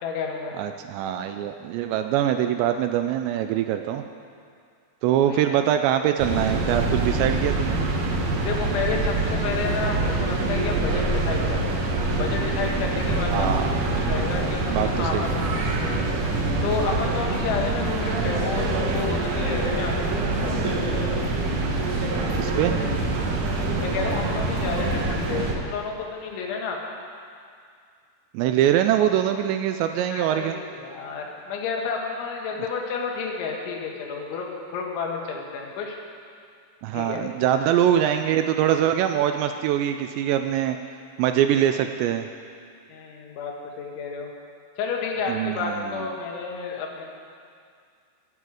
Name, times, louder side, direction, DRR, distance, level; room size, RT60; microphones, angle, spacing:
voice 1, 0.0-0.5 5.2-5.6 8.4-11.9 12.1-13.7 14.0-15.7 16.6-20.0 23.8-26.8 30.1-36.0 36.9-37.2 42.9-44.3 44.8-47.1, left 5 dB, 80° left, 0 dB, 3.9 m, -31 dB
voice 2, 0.6-4.0 5.0-7.8 13.3-13.7 14.7-15.3 22.3-22.7 28.3-30.6 36.8-40.8 41.2-42.3 45.3-46.1, right 11 dB, 85° right, 7 dB, 2.6 m, -23 dB
sound 1, 6.2-25.5, right 2 dB, 65° right, 2.1 m, -25 dB
21.0 x 9.3 x 4.9 m, 2.2 s
omnidirectional pair, 5.4 m